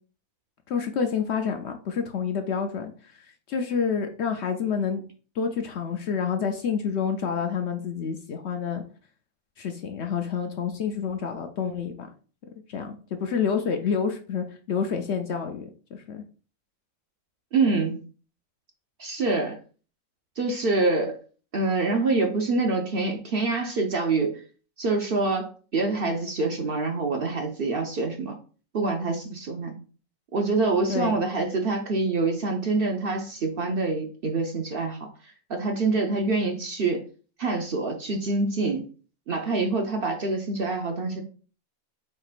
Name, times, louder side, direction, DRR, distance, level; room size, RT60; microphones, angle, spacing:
voice 1, 0.7-2.9 3.5-5.0 5.4-8.8 9.6-12.1 12.7-16.2 30.9-31.2, left 6 dB, 65° left, 5 dB, 0.8 m, -28 dB
voice 2, 17.5-18.0 19.0-19.6 20.4-21.2 21.5-24.4 24.8-28.4 28.7-29.8 30.3-35.1 35.5-37.1 37.4-38.9 39.3-41.2, right 3 dB, 55° right, 3 dB, 0.7 m, -26 dB
4.7 x 4.4 x 2.4 m, 0.38 s
omnidirectional pair, 1.4 m